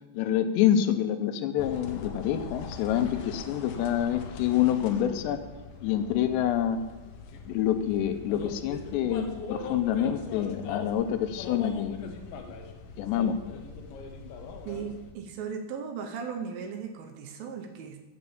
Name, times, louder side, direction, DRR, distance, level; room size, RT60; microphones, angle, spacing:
voice 1, 0.1-5.4 5.8-6.8 7.5-12.2 13.0-13.4, left 10 dB, 90° left, 9 dB, 2.9 m, -27 dB
sound 1, 1.6-15.1, left 4 dB, 70° left, 2.3 m, -41 dB
voice 2, 14.7-18.0, right 6 dB, 75° right, 6 dB, 2.2 m, -37 dB
8.3 x 6.8 x 7.0 m, 1.2 s
omnidirectional pair, 4.8 m